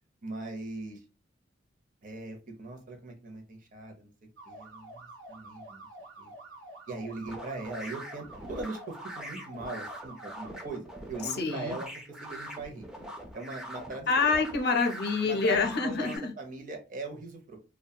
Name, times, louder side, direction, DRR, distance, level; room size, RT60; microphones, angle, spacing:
voice 1, 0.2-1.0 2.0-4.1 4.4-5.9 6.2-6.3 6.9-11.9 12.2-12.9 13.3-14.1 15.2-17.6, right 2 dB, 45° right, 3 dB, 0.6 m, -40 dB
sound 1, 4.4-10.5, right 2 dB, 75° right, 0.8 m, -48 dB
sound 2, 7.3-16.2, equal, 5° right, 0.4 m, -43 dB
voice 2, 11.2-11.7 14.1-16.3, left 4 dB, 60° left, 5 dB, 0.6 m, -27 dB
2.7 x 2.2 x 2.2 m, 0.32 s
head